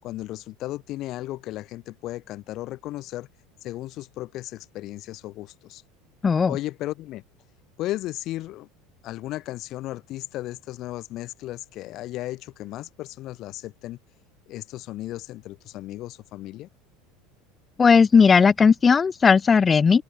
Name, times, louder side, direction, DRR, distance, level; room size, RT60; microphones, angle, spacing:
voice 1, 0.0-3.3 3.6-5.8 6.5-7.2 7.8-8.7 9.0-14.0 14.5-16.7, left 16 dB, 40° left, 5.1 m, -35 dB
voice 2, 6.2-6.6 17.8-20.0, left 5 dB, 15° left, 2.3 m, -16 dB
open air
cardioid pair, 170°, 0 cm